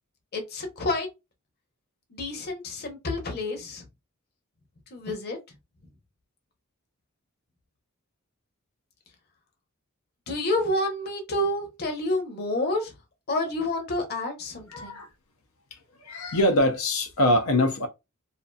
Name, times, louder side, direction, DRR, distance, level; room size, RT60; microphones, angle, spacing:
voice 1, 0.3-1.1 2.1-3.8 4.9-5.4 10.3-12.9 13.3-15.0, left 1 dB, 50° left, 0.8 m, -29 dB
voice 2, 14.7-15.1 16.0-17.9, left 1 dB, 90° left, 0.5 m, -23 dB
2.6 x 2.5 x 2.2 m
head